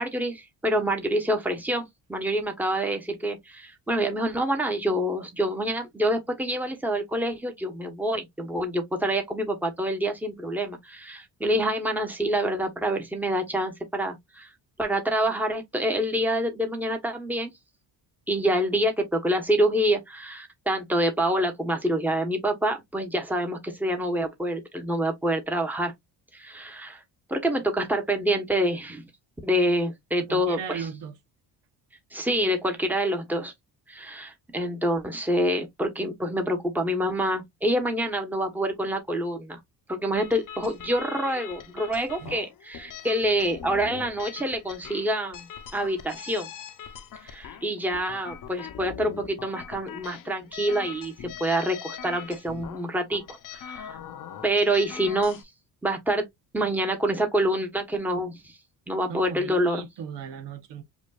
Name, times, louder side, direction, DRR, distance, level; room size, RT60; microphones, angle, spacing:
voice 1, 0.0-14.5 14.8-17.5 18.3-25.9 26.3-27.0 27.3-29.0 29.4-30.8 32.1-33.5 33.9-39.6 39.9-45.5 45.7-46.5 47.2-54.0 54.4-55.4 55.8-56.3 56.5-58.5 58.9-59.8, right 1 dB, 5° right, 1.1 m, -27 dB
voice 2, 30.2-31.1 42.2-42.4 59.1-60.8, right 7 dB, 75° right, 1.0 m, -37 dB
sound 1, 40.1-55.4, left 9 dB, 50° left, 0.8 m, -42 dB
5.1 x 2.6 x 2.4 m
cardioid pair, 105°, 42 cm